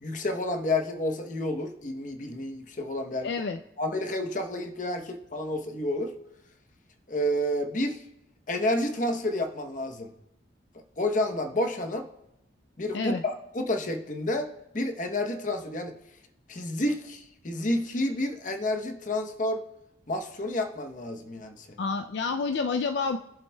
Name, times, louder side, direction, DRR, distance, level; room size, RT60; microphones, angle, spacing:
voice 1, 0.0-3.3 3.8-6.1 7.1-8.0 8.5-10.1 11.0-12.1 12.8-15.9 16.5-19.6 20.1-21.8, left 1 dB, 40° left, 5 dB, 0.8 m, -30 dB
voice 2, 3.2-3.6 12.9-13.2 21.8-23.2, left 4 dB, 65° left, 6 dB, 0.4 m, -29 dB
20.5 x 7.2 x 2.2 m, 0.88 s
head